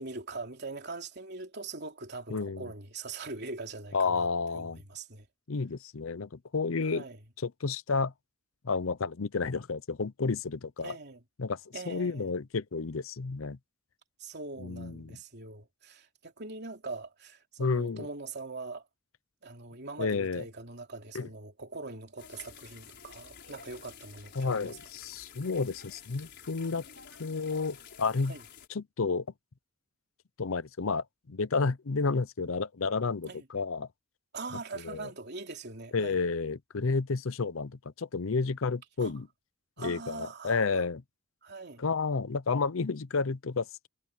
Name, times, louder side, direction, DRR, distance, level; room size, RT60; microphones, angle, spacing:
voice 1, 0.0-4.3 4.5-5.3 6.8-7.2 10.8-11.2 11.7-12.3 14.2-18.8 19.4-24.8 28.3-28.4 33.2-33.5 34.3-36.2 39.0-39.1 39.8-40.9 41.4-41.8, right 3 dB, 55° right, 3.2 m, -42 dB
voice 2, 2.3-2.6 3.9-4.8 5.5-7.0 7.4-8.1 8.6-11.0 11.4-11.6 11.9-13.6 14.6-15.2 17.6-18.1 20.0-20.4 21.1-21.3 24.4-26.8 27.2-28.3 28.7-29.3 30.4-33.9 34.8-35.1 35.9-39.3 39.8-41.0 41.8-43.9, left 4 dB, 75° left, 0.7 m, -31 dB
sound 1, 22.2-28.7, left 7 dB, 55° left, 5.5 m, -51 dB
head